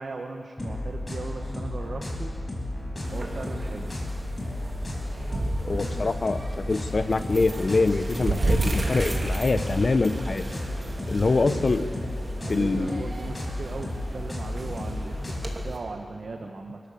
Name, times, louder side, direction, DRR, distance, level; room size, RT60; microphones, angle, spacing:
voice 1, 0.0-3.9 11.2-11.7 12.4-16.8, right 3 dB, 75° right, 3 dB, 1.2 m, -38 dB
sound 1, 0.6-15.6, left 1 dB, 30° left, 5.1 m, -33 dB
sound 2, 3.0-15.8, right 2 dB, 45° right, 2.6 m, -33 dB
voice 2, 5.7-10.4 11.1-11.8 12.5-13.0, left 3 dB, 55° left, 11 dB, 0.9 m, -24 dB
29.5 x 13.0 x 6.9 m, 2.4 s
wide cardioid pair, 75°, 0 cm